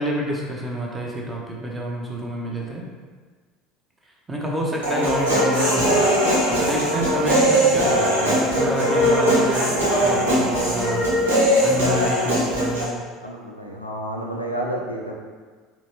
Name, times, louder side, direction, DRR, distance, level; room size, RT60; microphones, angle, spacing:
voice 1, 0.0-2.8 4.3-6.0 6.5-11.0 11.6-12.9, equal, 15° right, -2 dB, 0.8 m, -28 dB
Human voice, 4.8-12.8, equal, 75° right, 0.9 m, -20 dB
voice 2, 12.2-12.7 13.2-15.1, right 1 dB, 90° left, -2 dB, 0.4 m, -31 dB
4.0 x 2.4 x 3.0 m, 1.5 s
figure-of-eight pair, 65°, 0 cm